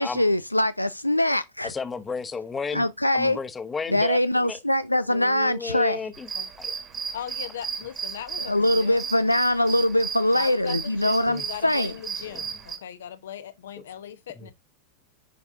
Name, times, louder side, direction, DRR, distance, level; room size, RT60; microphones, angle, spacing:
voice 1, 0.0-1.7 2.7-3.4 3.9-6.0 8.5-11.9, left 1 dB, 85° left, 0.3 m, -23 dB
voice 2, 1.6-2.9 3.1-4.6 5.1-6.3 6.6-6.7 11.3-11.4 14.4-14.5, left 5 dB, 15° left, 1.0 m, -33 dB
sound 1, 6.1-12.8, right 6 dB, 25° right, 1.8 m, -34 dB
voice 3, 7.1-9.1 10.3-14.5, left 9 dB, 60° left, 1.0 m, -38 dB
10.5 x 4.7 x 2.7 m
figure-of-eight pair, 90°, 0 cm